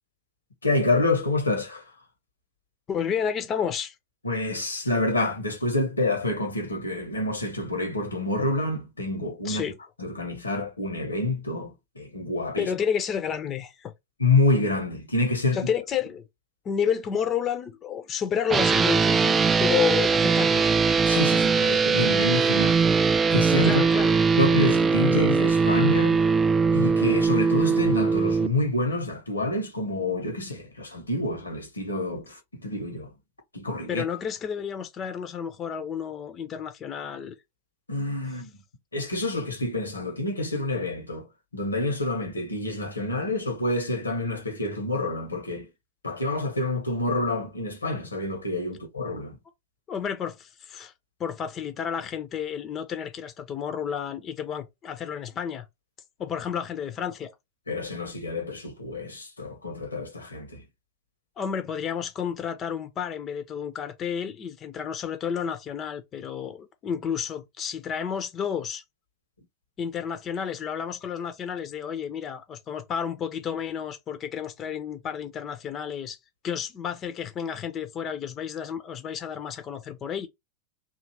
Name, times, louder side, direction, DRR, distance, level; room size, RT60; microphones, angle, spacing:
voice 1, 0.6-1.9 4.2-9.6 10.0-12.7 14.2-15.7 21.0-22.9 23.3-23.8 24.4-26.2 26.7-33.1 33.5-34.0 37.9-38.6 38.9-45.7 46.0-49.4 57.7-60.6, left 2 dB, 80° left, 1.0 m, -27 dB
voice 2, 2.9-3.9 9.4-9.7 12.6-13.9 15.5-16.2 16.6-20.7 23.6-24.2 33.9-37.3 49.9-50.9 51.2-55.6 56.2-57.3 61.4-68.8 69.8-76.2 76.4-80.3, left 8 dB, 30° left, 0.6 m, -31 dB
sound 1, 18.5-28.5, right 5 dB, 20° right, 0.3 m, -21 dB
2.8 x 2.4 x 2.8 m
figure-of-eight pair, 90°, 0 cm